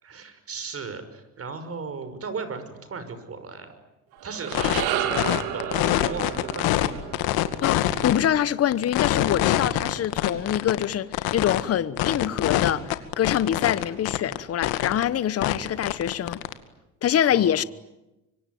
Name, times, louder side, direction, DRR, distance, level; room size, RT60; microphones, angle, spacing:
voice 1, 0.0-3.7 4.2-5.2 5.5-6.9 17.3-17.6, right 5 dB, 35° right, 6.0 m, -36 dB
sound 1, 4.1-8.6, right 11 dB, 75° right, 3.1 m, -32 dB
sound 2, 4.5-4.8 5.1-6.9 7.1-8.3 8.7-11.6 12.0-14.4 14.6-15.0 15.4-16.5, left 15 dB, 70° left, 2.2 m, -24 dB
voice 2, 7.6-16.4 17.0-17.6, left 10 dB, 40° left, 1.1 m, -25 dB
25.5 x 24.5 x 9.4 m
supercardioid pair, 90°, 38 cm